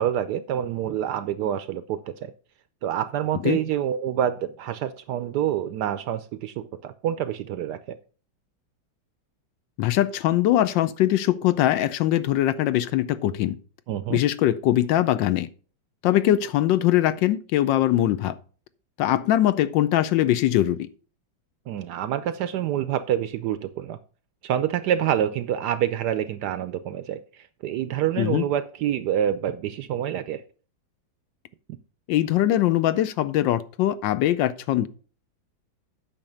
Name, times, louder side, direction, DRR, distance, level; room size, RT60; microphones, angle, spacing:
voice 1, 0.0-2.3 2.8-8.0 13.9-14.2 21.7-24.0 24.4-27.2 27.6-30.4, right 10 dB, 75° right, 1.0 m, -27 dB
voice 2, 9.8-13.6 14.1-15.5 16.0-18.3 19.0-20.9 28.2-28.4 32.1-34.9, left 13 dB, 75° left, 1.3 m, -22 dB
8.9 x 5.9 x 5.2 m
omnidirectional pair, 2.1 m